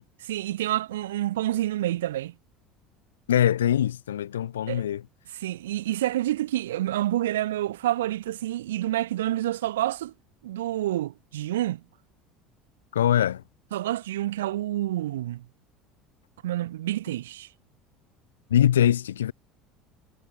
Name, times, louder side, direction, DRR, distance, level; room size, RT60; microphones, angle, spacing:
voice 1, 0.2-2.3 4.7-4.8 5.3-10.1 10.4-11.8 13.7-15.4 16.4-17.5, right 14 dB, 75° right, 2.2 m, -28 dB
voice 2, 3.3-5.0 12.9-13.4 18.5-19.3, left 10 dB, 80° left, 3.7 m, -22 dB
figure-of-eight pair, 65°, 0 cm